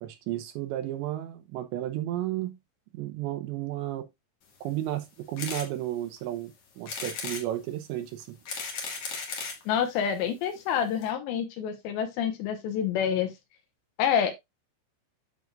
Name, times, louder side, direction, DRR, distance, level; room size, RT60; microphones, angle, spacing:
voice 1, 0.0-2.6 2.9-4.1 4.6-8.4, right 13 dB, 75° right, 3.0 m, -33 dB
sound 1, 5.4-5.7 6.2-6.3 6.9-7.5 8.2-9.6 10.4-10.5 10.7-10.8 11.0-11.1, left 5 dB, 60° left, 1.6 m, -35 dB
voice 2, 9.7-13.3 14.0-14.3, left 8 dB, 75° left, 3.2 m, -27 dB
9.4 x 6.1 x 2.5 m
omnidirectional pair, 5.4 m